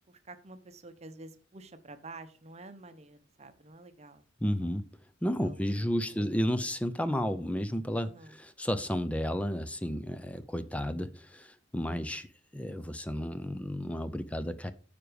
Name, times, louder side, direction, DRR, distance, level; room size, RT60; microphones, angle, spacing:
voice 1, 0.0-4.2 5.4-6.3 6.5-6.7 8.0-8.4 11.8-12.2, right 2 dB, 35° right, 0.8 m, -50 dB
voice 2, 4.4-4.8 5.2-8.1 8.4-12.3 12.5-14.7, equal, 5° left, 0.5 m, -32 dB
9.3 x 5.1 x 4.9 m
head